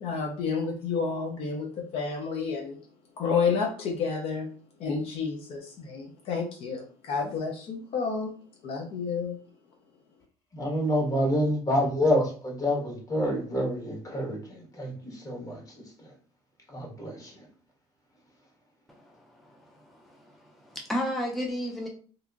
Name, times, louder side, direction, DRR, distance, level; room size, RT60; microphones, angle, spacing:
voice 1, 0.0-2.8 3.2-4.5 4.8-8.3 8.6-9.4, left 5 dB, 55° left, 2 dB, 0.5 m, -30 dB
voice 2, 10.5-16.2 16.7-17.5, left 1 dB, 30° left, -1 dB, 1.2 m, -28 dB
voice 3, 18.9-21.9, equal, ahead, 0 dB, 0.4 m, -34 dB
2.7 x 2.5 x 2.4 m, 0.43 s
supercardioid pair, 95°, 12 cm